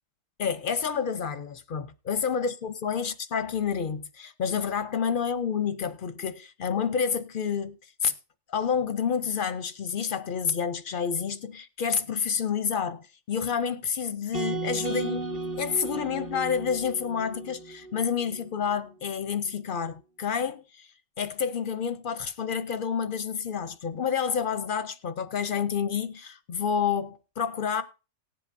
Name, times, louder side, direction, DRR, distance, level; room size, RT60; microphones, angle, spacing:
voice 1, 0.4-8.1 8.5-15.2 15.6-20.9 21.2-27.8, left 7 dB, 55° left, 0.6 m, -29 dB
sound 1, 14.3-18.5, right 2 dB, 35° right, 0.9 m, -34 dB
18.5 x 7.8 x 2.5 m
omnidirectional pair, 1.4 m